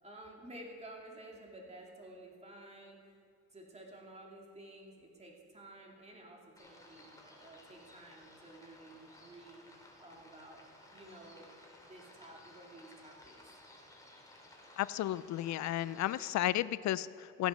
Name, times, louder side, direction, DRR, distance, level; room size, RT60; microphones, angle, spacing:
voice 1, 0.0-3.1 3.5-10.6 10.9-11.5 11.8-13.5, right 1 dB, 20° right, -1 dB, 2.6 m, -53 dB
sound 1, 6.6-16.5, left 1 dB, 10° left, 2.8 m, -57 dB
voice 2, 14.8-17.5, left 14 dB, 65° left, 17 dB, 0.5 m, -33 dB
15.0 x 8.2 x 6.3 m, 2.4 s
cardioid pair, 90°, 30 cm